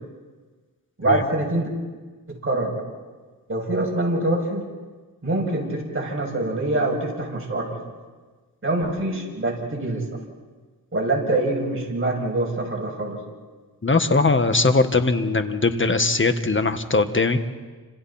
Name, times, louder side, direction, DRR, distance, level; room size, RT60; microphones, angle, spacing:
voice 1, 1.0-1.7 2.3-2.8 3.5-4.6 5.2-7.8 8.6-10.0 10.9-13.2, right 2 dB, 30° right, -1 dB, 7.4 m, -24 dB
voice 2, 13.8-17.5, left 3 dB, 30° left, 8 dB, 1.8 m, -20 dB
30.0 x 26.5 x 4.4 m, 1.4 s
cardioid pair, 60°, 40 cm